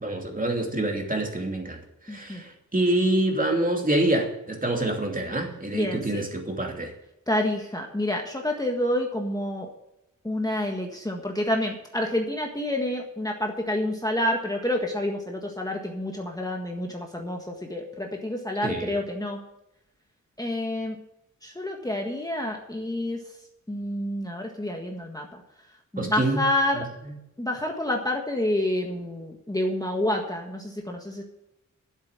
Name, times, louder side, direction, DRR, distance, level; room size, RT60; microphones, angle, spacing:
voice 1, 0.0-6.9 18.6-18.9 26.0-26.5 26.7-26.9, right 1 dB, 25° right, 2 dB, 2.7 m, -26 dB
voice 2, 2.1-2.4 5.7-6.2 7.3-9.7 10.2-19.4 20.4-21.0 21.4-23.2 23.7-25.4 25.9-26.8 27.4-31.2, left 1 dB, 10° left, 1 dB, 1.6 m, -28 dB
11.0 x 8.4 x 8.2 m, 0.85 s
wide cardioid pair, 115°, 32 cm